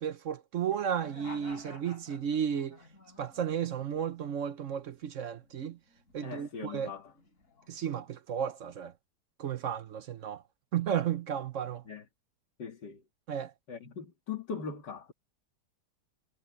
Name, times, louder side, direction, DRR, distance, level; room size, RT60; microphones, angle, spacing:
voice 1, 0.0-2.8 3.2-5.8 6.1-6.9 7.7-8.9 9.4-10.4 10.7-11.8 13.3-13.5, right 8 dB, 55° right, 1.0 m, -33 dB
sound 1, 1.0-4.3 4.7-6.3 6.6-8.1, left 4 dB, 50° left, 4.3 m, -53 dB
voice 2, 6.2-7.1 11.9-12.0 12.6-13.0 13.7-15.1, left 6 dB, 85° left, 2.9 m, -40 dB
omnidirectional pair, 1.8 m